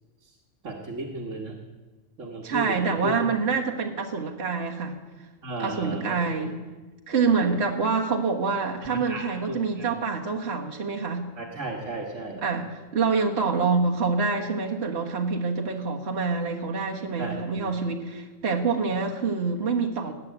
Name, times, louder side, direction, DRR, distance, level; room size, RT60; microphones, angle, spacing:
voice 1, 0.6-1.6 2.2-3.4 5.4-6.5 7.3-7.7 8.8-9.9 11.4-12.4 17.2-17.8, right 2 dB, 70° right, -2 dB, 1.9 m, -35 dB
voice 2, 2.4-5.0 5.6-6.6 7.1-11.2 12.4-20.1, right 4 dB, 55° right, 1 dB, 1.7 m, -26 dB
19.0 x 9.0 x 8.1 m, 1.2 s
omnidirectional pair, 1.3 m